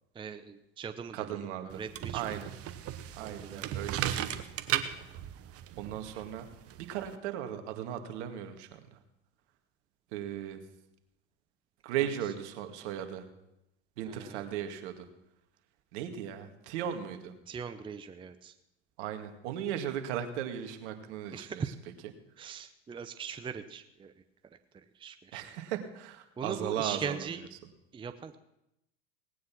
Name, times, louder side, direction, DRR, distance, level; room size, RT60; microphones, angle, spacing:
voice 1, 0.1-2.4 3.2-3.8 12.0-12.1 14.0-14.4 17.5-18.5 21.3-21.7 22.4-24.1 24.7-25.4 26.4-27.4 27.9-28.4, right 6 dB, 15° right, 10 dB, 0.7 m, -40 dB
voice 2, 1.1-1.8 2.1-2.5 3.1-4.3 5.8-6.5 6.8-9.0 10.1-10.6 11.8-13.3 14.0-15.1 15.9-17.3 19.0-21.6 25.3-27.2, right 10 dB, 65° right, 7 dB, 2.1 m, -37 dB
sound 1, 1.7-7.2, right 11 dB, 40° right, 1.2 m, -36 dB
18.5 x 9.4 x 6.1 m, 0.87 s
hypercardioid pair, 105°, 37 cm